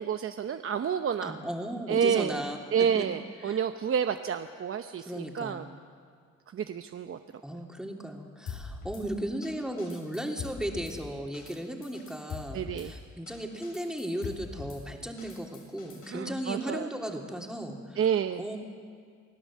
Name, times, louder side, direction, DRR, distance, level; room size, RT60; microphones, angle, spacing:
voice 1, 0.0-1.3 1.9-2.4 2.7-5.7 6.5-7.2 12.5-12.9 16.1-16.9 18.0-18.4, right 8 dB, 45° right, 8 dB, 0.8 m, -29 dB
voice 2, 1.2-3.1 3.4-3.6 5.1-5.7 7.4-18.1 18.4-18.6, right 1 dB, ahead, 1 dB, 3.0 m, -36 dB
Drum kit / Snare drum, 8.5-9.0 9.4-9.5 9.8-11.0 11.3-11.5 11.8-12.9 13.3-13.4 13.6-14.8 15.2-16.1, left 6 dB, 80° left, 7.5 m, -42 dB
25.0 x 15.5 x 7.5 m, 2.1 s
cardioid pair, 90°, 30 cm